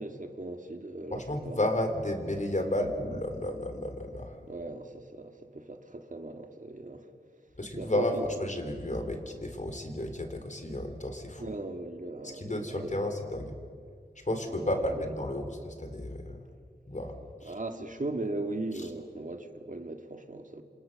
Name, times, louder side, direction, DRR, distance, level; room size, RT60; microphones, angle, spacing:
voice 1, 0.0-1.6 4.5-7.1 7.7-8.3 11.4-13.1 14.5-15.1 17.4-20.6, right 2 dB, 45° right, 6 dB, 2.4 m, -38 dB
voice 2, 1.1-4.4 7.6-11.5 12.2-13.6 14.3-16.4 16.9-17.2 17.4-17.5, left 1 dB, 45° left, 6 dB, 3.6 m, -32 dB
28.5 x 26.5 x 6.7 m, 2.2 s
wide cardioid pair, 65°, 18 cm